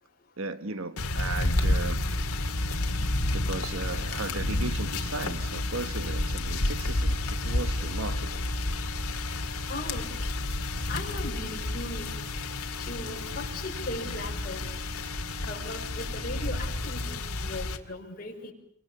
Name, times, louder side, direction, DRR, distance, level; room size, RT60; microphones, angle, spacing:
voice 1, 0.4-2.1 2.9-8.4, right 3 dB, 65° right, 1.4 m, -36 dB
sound 1, 1.0-17.8, left 2 dB, 85° left, 2.1 m, -30 dB
sound 2, 2.1-16.7, left 1 dB, 20° right, 3.1 m, -48 dB
voice 2, 9.7-10.1 10.9-12.2 12.8-14.7 15.4-18.5, left 2 dB, 40° left, 5.6 m, -38 dB
28.5 x 25.0 x 7.0 m
head